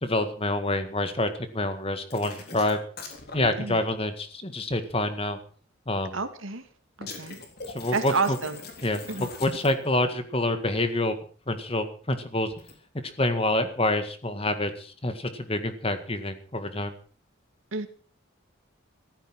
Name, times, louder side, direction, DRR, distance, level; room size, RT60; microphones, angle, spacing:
voice 1, 0.0-2.8 3.3-5.4 5.9-6.2 7.7-8.4 8.8-11.2 11.5-12.5 13.0-16.9, left 1 dB, 30° left, 10 dB, 1.8 m, -27 dB
sound 1, 2.1-3.5 7.0-10.0 12.5-12.7, left 3 dB, 50° left, 4.0 m, -41 dB
voice 2, 6.1-6.6 7.0-7.4 7.9-8.6 9.1-9.3 17.7-17.9, right 4 dB, 90° right, 8 dB, 2.3 m, -29 dB
15.0 x 13.5 x 6.2 m, 0.42 s
head